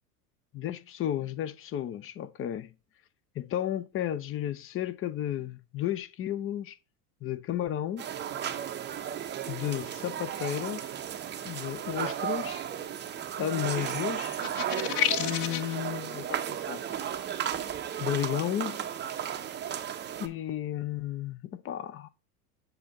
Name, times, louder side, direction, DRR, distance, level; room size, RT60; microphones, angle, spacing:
voice 1, 0.5-2.7 3.3-6.8 7.2-8.1 9.5-10.9 11.4-12.6 13.4-14.4 15.2-16.8 18.0-18.8 20.2-22.1, left 11 dB, 30° left, 0.6 m, -33 dB
sound 1, 8.0-20.3, right 9 dB, 25° right, 0.7 m, -34 dB
sound 2, 14.4-15.7, left 11 dB, 75° left, 0.7 m, -29 dB
6.9 x 2.6 x 5.7 m
hypercardioid pair, 85°, 45 cm